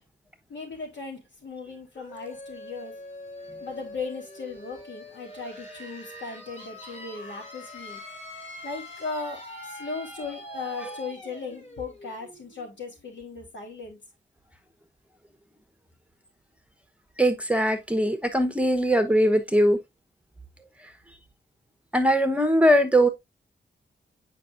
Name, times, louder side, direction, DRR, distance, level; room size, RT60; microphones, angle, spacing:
voice 1, 0.5-2.9 3.6-8.0 8.6-14.0, left 4 dB, 70° left, 3.6 m, -37 dB
sound 1, 1.9-13.5, left 1 dB, 35° left, 5.4 m, -43 dB
voice 2, 17.2-19.8 21.9-23.1, equal, 5° right, 1.0 m, -21 dB
8.4 x 5.3 x 2.5 m
wide cardioid pair, 85°, 20 cm